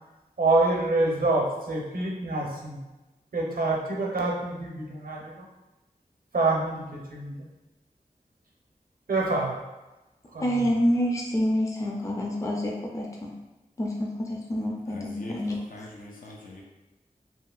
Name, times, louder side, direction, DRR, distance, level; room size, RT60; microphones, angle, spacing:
voice 1, 0.4-2.8 3.3-5.4 6.3-7.5 9.1-9.5 10.3-10.7, right 2 dB, 85° right, -2 dB, 0.6 m, -26 dB
voice 2, 10.4-13.3 13.8-15.6, equal, 20° left, -2 dB, 0.4 m, -27 dB
voice 3, 14.9-16.6, left 2 dB, 75° left, -2 dB, 0.5 m, -43 dB
2.8 x 2.7 x 2.3 m, 1.1 s
wide cardioid pair, 70°, 15 cm